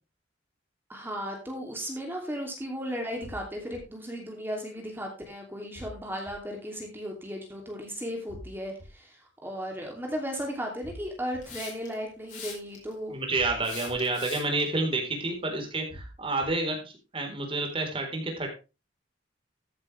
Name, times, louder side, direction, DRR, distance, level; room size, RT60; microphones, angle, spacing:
voice 1, 0.9-9.2 9.4-13.1, equal, 10° right, 1 dB, 2.8 m, -35 dB
sound 1, 3.2-3.8 5.8-6.3 8.3-8.9 10.8-11.4 13.4-13.9 15.9-16.5, equal, 65° left, 7.4 m, -44 dB
Hiss, 11.4-11.9 12.3-12.9 13.6-14.6, left 6 dB, 45° left, 4.9 m, -41 dB
voice 2, 13.1-18.5, right 2 dB, 30° right, 2 dB, 4.1 m, -29 dB
14.0 x 8.7 x 3.4 m, 0.30 s
head